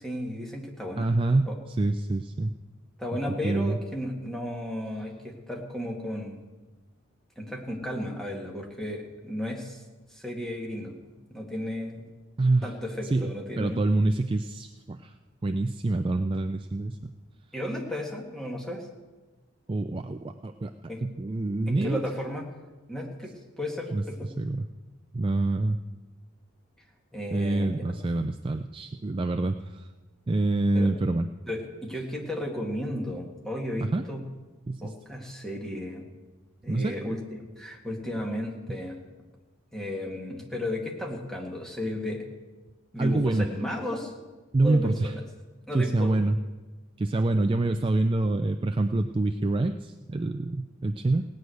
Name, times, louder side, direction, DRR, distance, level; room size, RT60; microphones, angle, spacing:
voice 1, 0.0-1.1 1.4-1.6 3.0-6.4 7.4-9.8 10.1-11.0 11.3-12.1 12.6-13.9 17.5-18.9 20.9-21.0 21.7-22.5 22.9-24.3 27.1-27.8 30.8-30.9 31.5-34.2 34.8-36.0 36.6-37.2 37.6-39.0 39.7-42.3 42.9-44.1 44.6-45.2 45.7-46.1, left 1 dB, ahead, -1 dB, 1.9 m, -34 dB
voice 2, 1.0-2.5 3.4-3.8 12.4-12.7 13.0-15.1 15.4-17.1 19.7-20.7 21.0-22.0 23.9-24.0 24.4-24.7 25.1-25.8 27.3-29.9 30.3-31.3 33.8-34.0 34.7-34.9 36.7-37.0 43.0-43.5 44.5-45.1 45.7-46.4 47.0-51.3, right 2 dB, 25° right, 8 dB, 0.3 m, -26 dB
17.5 x 6.4 x 9.3 m, 1.2 s
head